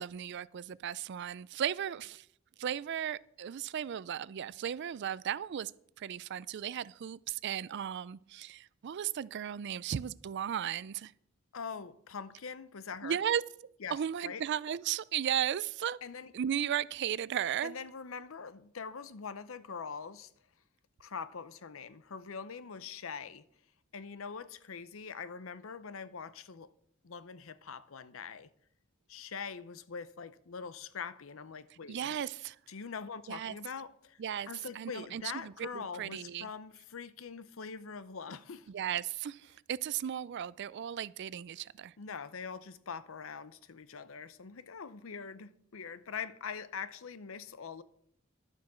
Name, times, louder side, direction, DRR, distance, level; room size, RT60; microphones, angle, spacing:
voice 1, 0.0-2.2 2.6-5.7 6.0-11.1 13.0-13.4 13.9-16.0 16.3-17.8 31.9-32.6 33.3-33.6 34.2-34.5 34.7-36.5 38.7-41.9, right 9 dB, 55° right, 0.3 m, -35 dB
voice 2, 11.5-13.2 13.8-14.0 14.2-14.4 16.0-16.3 17.6-20.3 21.0-23.5 23.9-26.7 27.0-28.5 29.1-32.0 32.7-34.2 34.5-38.7 42.0-47.8, left 6 dB, 70° left, 0.7 m, -43 dB
12.0 x 7.3 x 6.2 m
head